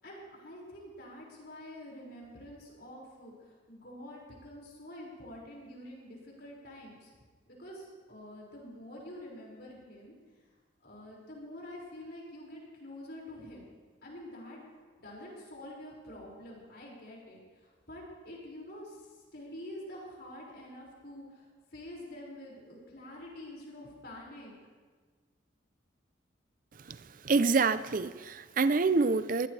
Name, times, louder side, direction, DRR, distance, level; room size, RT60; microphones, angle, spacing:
voice 1, 0.0-7.1 7.5-10.2 10.8-13.7 14.0-14.6 15.0-24.5, left 1 dB, 55° left, -3 dB, 5.6 m, -47 dB
voice 2, 27.2-29.5, right 4 dB, 45° right, 14 dB, 0.5 m, -26 dB
23.0 x 17.5 x 3.3 m, 1.4 s
head